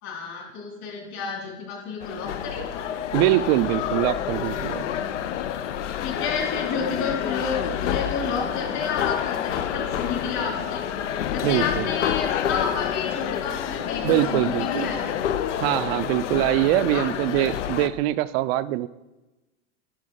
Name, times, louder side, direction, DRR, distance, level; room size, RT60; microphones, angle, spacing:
voice 1, 0.0-2.7 6.0-10.8 11.3-15.2 16.6-17.0, left 5 dB, 50° left, -1 dB, 3.5 m, -30 dB
sound 1, 2.0-17.9, left 9 dB, 90° left, 0.7 m, -28 dB
voice 2, 3.1-4.9 11.4-11.9 14.0-14.9 15.6-18.9, right 15 dB, 60° right, 14 dB, 0.4 m, -23 dB
10.0 x 5.0 x 5.5 m, 1.1 s
supercardioid pair, 115°, 35 cm